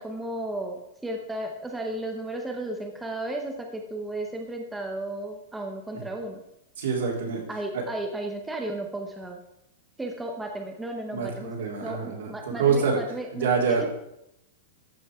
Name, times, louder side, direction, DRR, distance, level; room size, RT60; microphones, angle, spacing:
voice 1, 0.0-6.4 7.5-9.4 10.0-11.5 11.8-13.9, right 1 dB, 5° right, 2 dB, 0.8 m, -34 dB
voice 2, 6.8-7.4 11.1-13.0 13.4-13.9, right 5 dB, 80° right, -1 dB, 3.5 m, -26 dB
13.5 x 6.1 x 4.9 m, 0.81 s
supercardioid pair, 180°, 0 cm